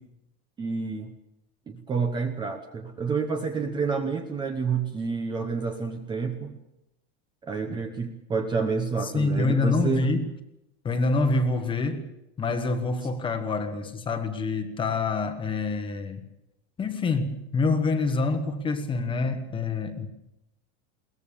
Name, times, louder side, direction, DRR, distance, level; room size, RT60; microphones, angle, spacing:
voice 1, 0.6-1.1 1.7-6.6 7.4-10.1, right 5 dB, 15° right, 6 dB, 0.9 m, -29 dB
voice 2, 9.0-10.3 10.8-12.1 12.4-16.2 16.8-20.1, left 3 dB, 15° left, 8 dB, 1.3 m, -26 dB
22.0 x 19.0 x 6.9 m, 0.89 s
supercardioid pair, 175°, 34 cm